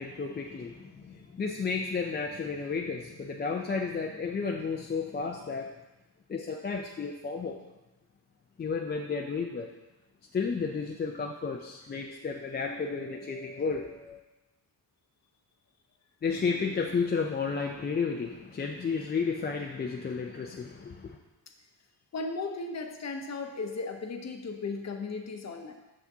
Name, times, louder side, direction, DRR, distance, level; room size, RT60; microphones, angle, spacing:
voice 1, 0.0-5.7 6.3-7.6 8.6-9.7 10.3-14.2 16.2-21.2, left 5 dB, 25° left, 1 dB, 0.4 m, -32 dB
voice 2, 22.1-25.7, left 3 dB, 40° left, 5 dB, 0.8 m, -36 dB
5.9 x 5.9 x 2.7 m, 1.0 s
cardioid pair, 75°, 41 cm